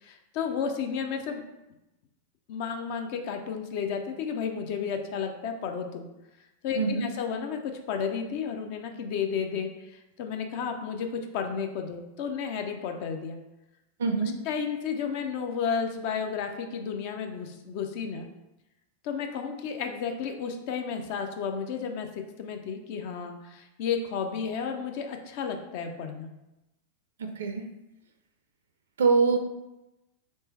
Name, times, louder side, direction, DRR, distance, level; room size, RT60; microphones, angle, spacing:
voice 1, 0.0-1.4 2.5-6.0 6.6-13.4 14.5-18.3 19.0-26.3, left 6 dB, 45° left, 5 dB, 0.4 m, -32 dB
voice 2, 6.8-7.1 14.0-14.4 27.2-27.6 29.0-29.4, right 4 dB, 65° right, 6 dB, 0.3 m, -24 dB
3.2 x 3.1 x 3.1 m, 0.96 s
figure-of-eight pair, 90°, 0 cm